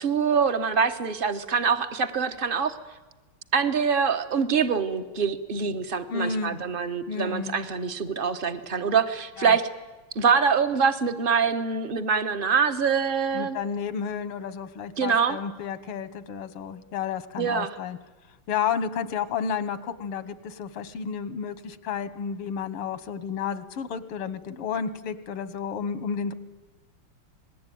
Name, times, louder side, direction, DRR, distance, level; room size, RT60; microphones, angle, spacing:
voice 1, 0.0-2.8 3.5-9.7 10.1-13.6 15.0-15.4 17.4-17.7, right 6 dB, 35° right, 9 dB, 0.9 m, -24 dB
voice 2, 6.1-6.6 7.1-7.6 9.4-9.6 13.3-18.0 18.5-26.3, left 7 dB, 85° left, 14 dB, 2.1 m, -31 dB
26.5 x 20.0 x 9.3 m, 1.2 s
omnidirectional pair, 2.4 m